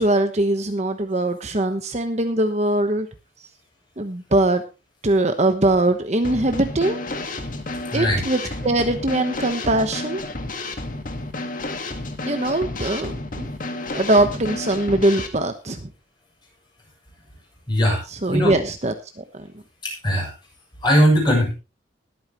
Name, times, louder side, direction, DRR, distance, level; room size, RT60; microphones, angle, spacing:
voice 1, 0.0-3.1 4.0-4.6 5.0-7.1 7.9-10.2 12.3-13.5 13.9-15.9 18.1-19.6, right 1 dB, 35° right, 7 dB, 1.1 m, -21 dB
Drum kit / Snare drum, 6.2-15.3, left 2 dB, 45° left, 1.8 m, -31 dB
voice 2, 17.7-18.0 18.3-18.5 19.8-20.3 20.8-21.5, equal, 25° left, -1 dB, 7.1 m, -19 dB
20.5 x 9.0 x 3.1 m, 0.30 s
head